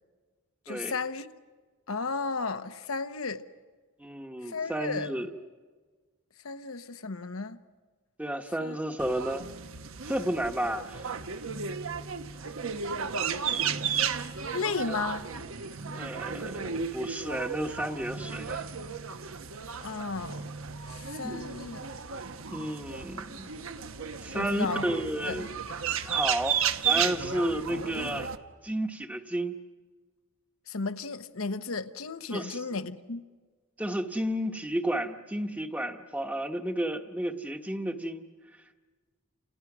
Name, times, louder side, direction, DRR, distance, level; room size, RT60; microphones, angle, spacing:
voice 1, 0.7-1.3 1.9-3.4 4.4-5.1 6.4-7.6 8.6-8.7 13.0-13.7 14.5-15.2 19.8-20.4 20.9-21.9 24.3-24.9 25.3-25.4 30.7-33.2, left 4 dB, 75° left, 1.0 m, -34 dB
voice 2, 4.0-5.3 8.2-9.5 10.1-11.2 14.9-15.0 15.9-18.6 21.2-21.4 22.5-23.5 24.2-25.5 26.0-28.3 28.6-29.6 32.3-32.6 33.8-38.3, right 1 dB, 5° right, 1.1 m, -32 dB
sound 1, 9.0-28.4, right 7 dB, 70° right, 1.1 m, -34 dB
30.0 x 28.0 x 6.1 m
head